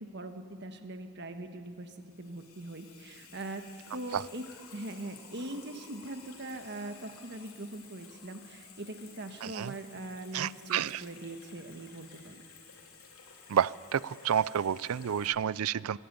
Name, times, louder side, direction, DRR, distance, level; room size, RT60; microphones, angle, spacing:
voice 1, 0.0-4.5 4.7-12.4, right 1 dB, 50° right, 7 dB, 1.5 m, -42 dB
Water tap faucet / Sink (filling or washing), 1.6-15.3, left 5 dB, 80° left, 3.5 m, -54 dB
voice 2, 9.4-9.7 10.3-11.0 13.5-16.0, right 8 dB, 75° right, 21 dB, 0.4 m, -30 dB
24.0 x 12.0 x 9.4 m, 2.7 s
head